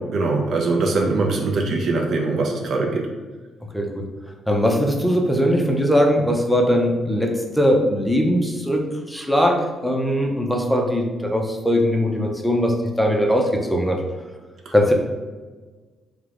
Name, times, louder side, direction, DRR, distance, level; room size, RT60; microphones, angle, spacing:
voice 1, 0.1-3.1, right 3 dB, 60° right, 1 dB, 0.4 m, -22 dB
voice 2, 3.7-4.1 4.5-14.0 14.7-14.9, equal, ahead, 1 dB, 0.4 m, -20 dB
3.1 x 2.1 x 2.4 m, 1.3 s
cardioid pair, 90°, 0 cm